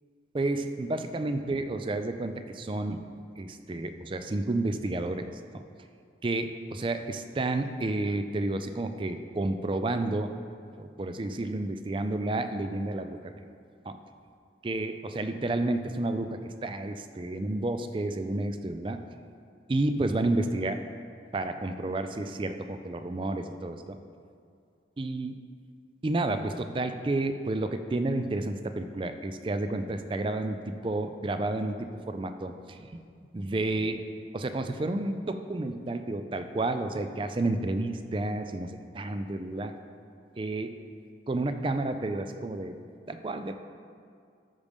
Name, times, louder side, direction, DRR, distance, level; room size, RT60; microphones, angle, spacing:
voice 1, 0.3-3.0 3.4-5.3 6.2-10.3 10.8-13.3 13.9-14.0 14.6-19.0 19.7-20.8 21.3-24.0 25.0-25.4 26.0-32.5 33.3-34.0 34.3-38.7 38.9-39.8 40.4-40.8 41.3-42.8 43.1-43.5, right 2 dB, 30° right, 8 dB, 0.4 m, -30 dB
13.0 x 5.3 x 3.5 m, 2.2 s
head